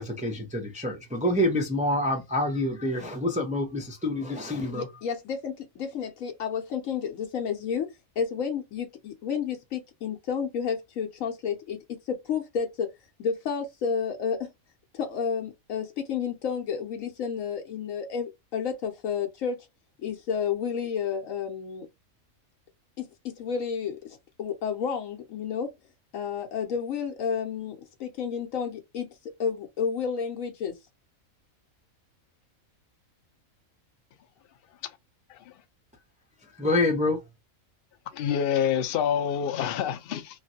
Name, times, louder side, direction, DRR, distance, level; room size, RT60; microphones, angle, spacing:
voice 1, 0.0-4.9 36.5-37.2, left 1 dB, 10° right, 0.4 m, -27 dB
voice 2, 4.7-7.9 8.2-11.8 12.2-12.9 13.2-14.5 14.9-19.6 20.0-21.9 23.0-24.0 24.4-25.7 26.1-29.1 29.4-30.7, left 6 dB, 75° left, 1.0 m, -31 dB
voice 3, 38.1-40.4, left 8 dB, 60° left, 0.6 m, -27 dB
3.1 x 2.4 x 2.6 m
omnidirectional pair, 1.4 m